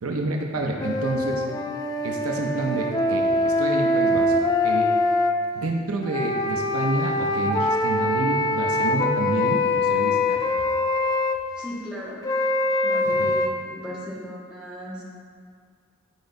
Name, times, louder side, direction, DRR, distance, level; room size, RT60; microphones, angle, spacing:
voice 1, 0.0-1.4 2.0-5.0 5.5-10.4 13.0-13.3, right 2 dB, 75° right, 1 dB, 0.7 m, -29 dB
sound 1, 0.8-5.3 6.0-11.4 12.2-13.5, left 2 dB, 15° left, 0.3 m, -23 dB
voice 2, 11.5-12.2 12.8-15.0, equal, 5° right, -9 dB, 1.6 m, -37 dB
10.5 x 5.2 x 2.7 m, 2.1 s
head